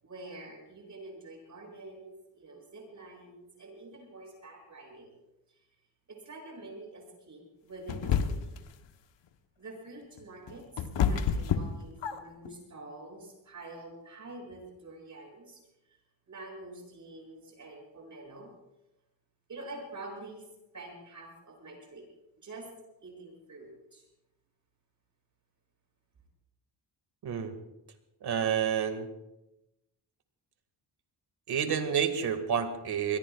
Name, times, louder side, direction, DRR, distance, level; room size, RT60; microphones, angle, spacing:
voice 1, 0.0-5.2 5.5-5.6 6.1-8.5 9.6-15.6 15.9-16.0 16.3-18.5 19.5-20.5 20.7-22.0 22.4-22.7 23.0-24.0, right 2 dB, 40° right, 0 dB, 7.4 m, -47 dB
sound 1, 7.9-8.7 10.2-12.5, left 7 dB, 85° left, 1.1 m, -29 dB
voice 2, 27.2-27.5 28.2-29.1 31.5-33.2, right 8 dB, 60° right, 7 dB, 2.0 m, -29 dB
25.5 x 21.0 x 2.4 m, 0.93 s
cardioid pair, 120°, 43 cm